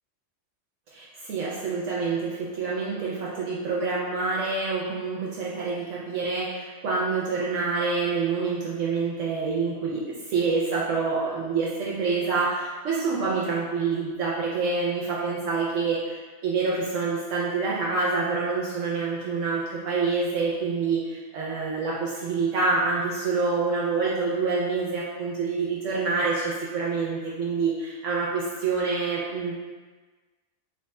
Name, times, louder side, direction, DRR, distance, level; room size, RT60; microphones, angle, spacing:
voice 1, 0.9-29.5, right 4 dB, 75° right, -6 dB, 1.0 m, -27 dB
3.1 x 2.3 x 4.1 m, 1.4 s
omnidirectional pair, 1.3 m